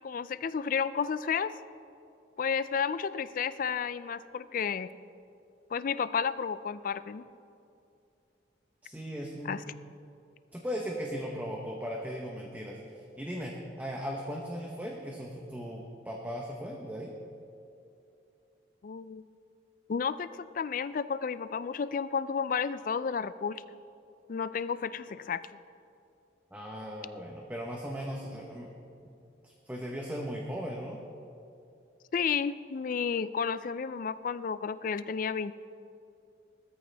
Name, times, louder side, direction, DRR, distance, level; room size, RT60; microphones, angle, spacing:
voice 1, 0.0-1.5 2.4-4.9 5.7-7.3 9.5-9.7 18.8-19.2 19.9-20.3 20.5-23.6 24.3-25.4 32.1-35.5, left 6 dB, 45° left, 15 dB, 0.4 m, -32 dB
voice 2, 8.8-9.6 10.5-17.1 26.5-28.7 29.0-29.1 29.4-31.0, equal, 10° right, -1 dB, 1.0 m, -38 dB
19.5 x 13.5 x 3.4 m, 2.7 s
head